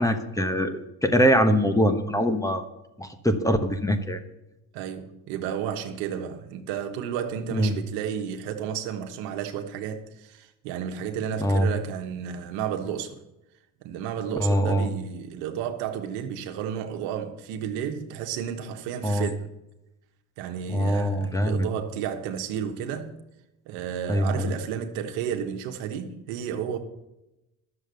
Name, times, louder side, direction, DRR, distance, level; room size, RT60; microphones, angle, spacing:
voice 1, 0.0-2.6 3.0-4.2 7.5-7.8 11.4-11.7 14.4-14.9 19.0-19.3 20.7-21.7 24.1-24.5, equal, 10° left, 1.2 m, -23 dB
voice 2, 4.7-13.2 13.8-19.5 20.4-23.1 23.7-26.8, right 8 dB, 85° right, 1.3 m, -32 dB
11.0 x 7.2 x 6.9 m
supercardioid pair, 85°, 42 cm